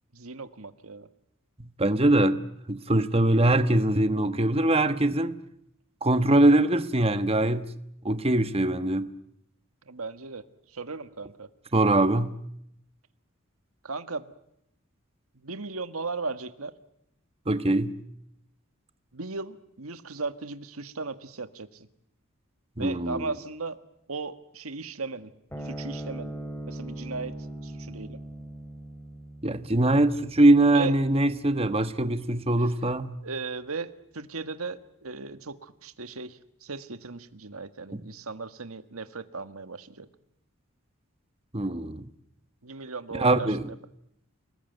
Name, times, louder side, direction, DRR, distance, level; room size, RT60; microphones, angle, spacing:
voice 1, 0.1-1.1 9.8-11.5 13.8-14.3 15.3-16.7 19.1-21.9 22.8-23.8 24.1-25.3 25.6-26.4 26.7-27.4 27.6-28.2 30.7-30.9 32.6-32.7 33.2-40.1 42.6-43.8, right 4 dB, 90° right, 1.6 m, -37 dB
voice 2, 1.6-2.4 2.7-5.4 6.0-7.7 8.0-9.1 11.7-12.4 17.5-18.0 22.8-23.3 29.4-33.1 37.9-38.0 41.5-42.1 43.1-43.6, right 1 dB, 30° right, 1.3 m, -22 dB
sound 1, 25.5-32.2, right 1 dB, 10° left, 2.8 m, -40 dB
29.0 x 20.0 x 9.3 m
head